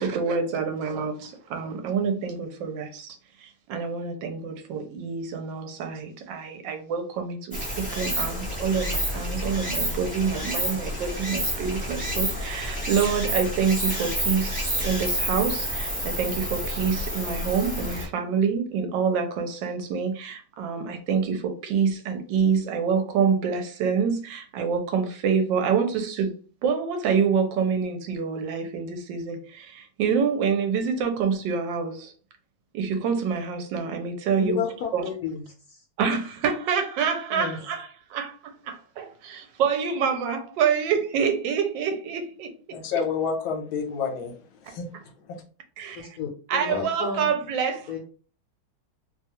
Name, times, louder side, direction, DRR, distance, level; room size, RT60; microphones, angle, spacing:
voice 1, 0.0-3.2 3.4-26.3 26.6-32.1 32.7-34.6 34.9-35.0 36.0-42.5 45.8-46.1 46.5-48.0, right 6 dB, 75° right, 1.2 m, -27 dB
Stream, 7.5-18.1, equal, 10° right, 0.6 m, -29 dB
voice 2, 34.4-35.4 35.7-35.8 37.3-37.6 45.9-47.3 47.9-48.0, left 6 dB, 65° left, 1.0 m, -31 dB
voice 3, 42.7-45.4, left 5 dB, 85° left, 1.4 m, -30 dB
3.1 x 2.3 x 2.8 m
omnidirectional pair, 2.2 m